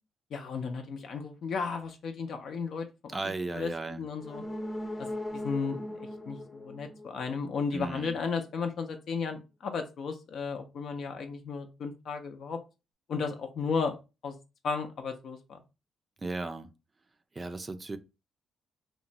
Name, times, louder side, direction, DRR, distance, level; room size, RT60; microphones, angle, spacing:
voice 1, 0.3-3.1 3.5-3.7 4.0-4.4 5.0-12.6 13.1-14.0 14.2-14.3 14.6-15.6, left 5 dB, 65° left, 0.5 m, -34 dB
voice 2, 3.1-4.0 7.7-8.2 16.2-16.7 17.3-18.0, right 3 dB, 25° right, 0.4 m, -35 dB
sound 1, 4.2-7.9 8.2-8.3, left 1 dB, 25° left, 0.8 m, -39 dB
2.9 x 2.1 x 2.7 m
cardioid pair, 90°, 0 cm